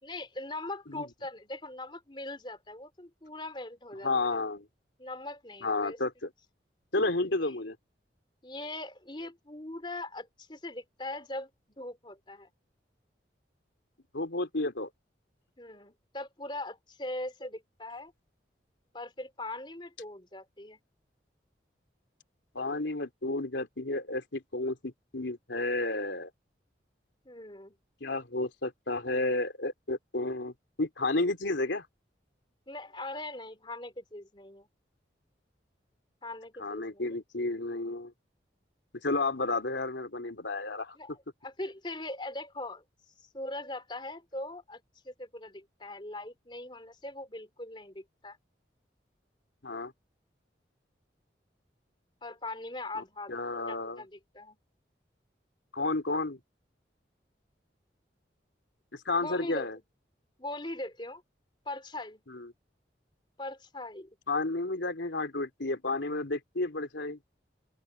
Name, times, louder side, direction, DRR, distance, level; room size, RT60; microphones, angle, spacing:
voice 1, 0.0-4.4 5.0-6.0 7.2-7.6 8.4-12.5 15.6-18.1 18.9-20.8 27.2-27.7 32.7-34.7 36.2-37.0 40.9-42.8 43.2-48.4 52.2-54.6 59.2-59.7 60.4-61.2 61.6-62.2 63.4-64.2, left 2 dB, 25° left, 3.3 m, -41 dB
voice 2, 4.0-4.6 5.6-6.1 6.9-7.8 14.1-14.9 22.5-26.3 28.0-31.9 36.6-38.1 39.0-41.0 49.6-49.9 52.9-54.0 55.7-56.4 58.9-59.8 62.3-62.5 64.3-67.2, left 2 dB, 85° left, 3.2 m, -31 dB
open air
head